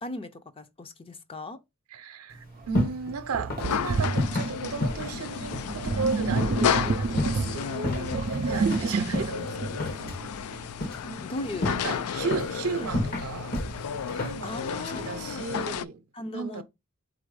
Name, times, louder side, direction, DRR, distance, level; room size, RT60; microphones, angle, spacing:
voice 1, 0.0-1.6 8.5-8.7 11.2-12.9 14.1-15.5 16.1-16.6, left 2 dB, 25° left, 0.5 m, -38 dB
voice 2, 1.9-9.9 11.0-11.2 11.7-13.6 14.1-16.0 16.3-16.6, right 4 dB, 85° right, 0.6 m, -34 dB
sound 1, 2.3-15.8, left 1 dB, 45° left, 0.9 m, -34 dB
Sink (filling or washing), 2.6-2.7 3.3-10.6, right 4 dB, 40° right, 0.4 m, -30 dB
sound 2, 3.6-15.8, left 8 dB, 90° left, 0.4 m, -33 dB
4.3 x 2.5 x 4.7 m
head